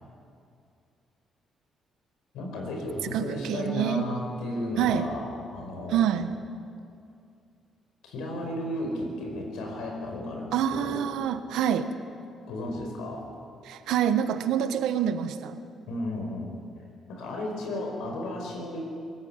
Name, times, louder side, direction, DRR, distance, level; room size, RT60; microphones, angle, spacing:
voice 1, 2.3-6.1 8.0-11.0 12.5-13.3 15.9-16.5 17.1-18.8, left 1 dB, 90° left, 2 dB, 4.9 m, -34 dB
voice 2, 3.1-4.1 4.8-5.1 5.9-6.3 10.5-11.9 13.6-15.6, right 9 dB, 85° right, 10 dB, 1.1 m, -26 dB
22.5 x 14.5 x 8.8 m, 2.4 s
cardioid pair, 90°, 0 cm